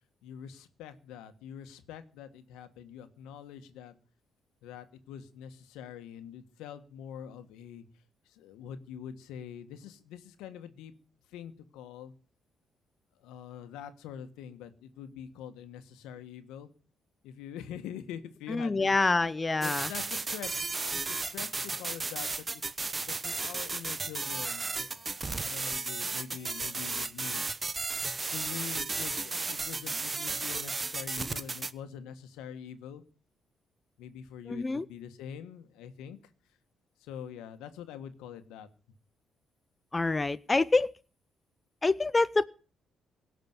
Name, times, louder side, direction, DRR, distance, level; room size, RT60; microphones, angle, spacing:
voice 1, 0.2-4.0 4.6-7.8 8.3-10.9 11.3-12.1 13.2-16.7 17.2-19.3 19.6-22.6 23.0-27.4 28.3-33.0 34.0-36.2 37.0-38.7, left 9 dB, 90° left, 9 dB, 1.5 m, -45 dB
voice 2, 18.5-19.9 34.5-34.8 39.9-40.9 41.8-42.5, left 3 dB, 25° left, 15 dB, 0.6 m, -26 dB
sound 1, 19.6-31.7, right 3 dB, 30° right, 1.0 m, -34 dB
17.5 x 6.0 x 9.5 m, 0.39 s
supercardioid pair, 70°, 0 cm